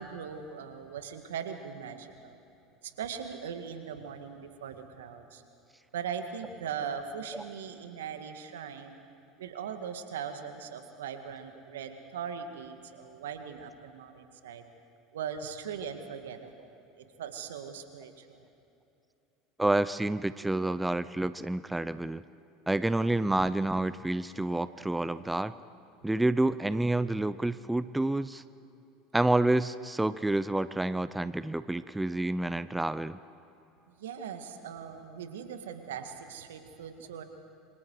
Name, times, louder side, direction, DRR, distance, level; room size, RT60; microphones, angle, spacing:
voice 1, 0.0-2.4 2.8-5.4 5.9-9.0 9.4-14.6 15.1-16.7 17.0-18.5 33.9-37.2, right 7 dB, 80° right, 7 dB, 1.9 m, -40 dB
voice 2, 19.6-22.2 22.7-25.5 26.0-28.4 29.1-33.2, right 2 dB, 10° right, 15 dB, 0.6 m, -28 dB
27.0 x 25.5 x 4.8 m, 2.9 s
hypercardioid pair, 80°, 0 cm